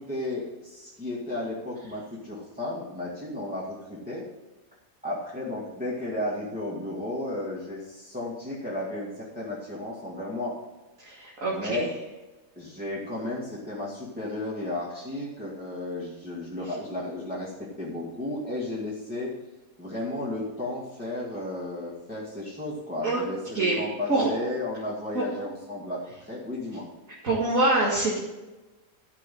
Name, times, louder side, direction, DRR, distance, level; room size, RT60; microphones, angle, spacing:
voice 1, 0.0-4.2 5.0-10.5 11.5-11.9 12.6-19.3 19.8-26.9, left 1 dB, 5° right, -8 dB, 2.1 m, -33 dB
voice 2, 11.0-11.9 23.0-23.2 23.5-23.8 24.1-24.3 25.1-25.2 27.2-28.2, right 2 dB, 55° right, -5 dB, 2.4 m, -25 dB
12.5 x 5.5 x 7.6 m, 1.1 s
omnidirectional pair, 1.7 m